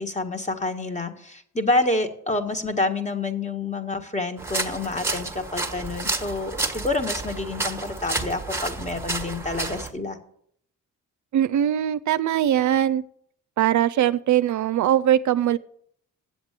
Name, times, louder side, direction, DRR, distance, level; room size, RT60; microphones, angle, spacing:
voice 1, 0.0-10.2, left 2 dB, 20° left, 6 dB, 1.7 m, -28 dB
sound 1, 4.4-9.9, right 2 dB, 5° right, 1.4 m, -30 dB
voice 2, 11.3-13.0 13.6-15.6, right 11 dB, 60° right, 12 dB, 0.5 m, -21 dB
8.2 x 7.9 x 8.2 m, 0.66 s
supercardioid pair, 65°, 34 cm